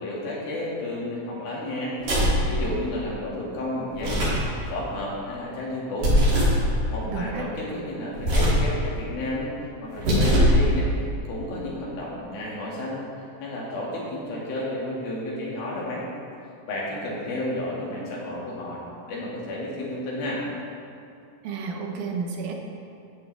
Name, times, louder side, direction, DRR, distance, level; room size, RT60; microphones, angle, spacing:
voice 1, 0.0-4.3 4.7-6.1 6.9-10.9 11.3-13.0 13.4-16.0 16.7-18.8 19.1-20.4, left 1 dB, 80° left, -5 dB, 3.9 m, -32 dB
sound 1, 2.0-2.5 3.9-4.5 6.0-6.6 8.2-8.7 9.9-10.6, equal, 55° right, 4.5 m, -20 dB
voice 2, 7.1-7.5 21.4-22.6, right 5 dB, 85° right, 1 dB, 3.0 m, -31 dB
13.5 x 9.7 x 3.4 m, 2.5 s
omnidirectional pair, 4.1 m